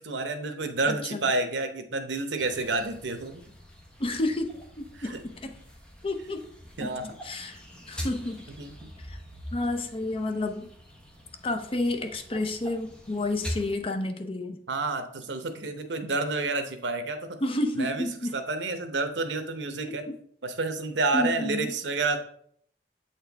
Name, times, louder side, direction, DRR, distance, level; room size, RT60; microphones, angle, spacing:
voice 1, 0.0-3.4 5.0-5.2 6.8-7.1 8.6-8.7 14.7-17.4 17.8-18.1 18.3-20.0 20.4-22.2, right 3 dB, 90° right, 7 dB, 0.8 m, -29 dB
voice 2, 0.8-1.3 4.0-5.5 6.0-6.4 6.8-6.9 7.2-7.6 7.9-8.4 9.1-9.2 9.5-10.7 11.4-14.6 17.4-18.4 20.1-20.2 21.1-21.7, left 2 dB, 30° left, 5 dB, 0.6 m, -30 dB
sound 1, 2.4-13.7, equal, 5° left, 1.0 m, -43 dB
7.5 x 4.4 x 3.4 m, 0.63 s
head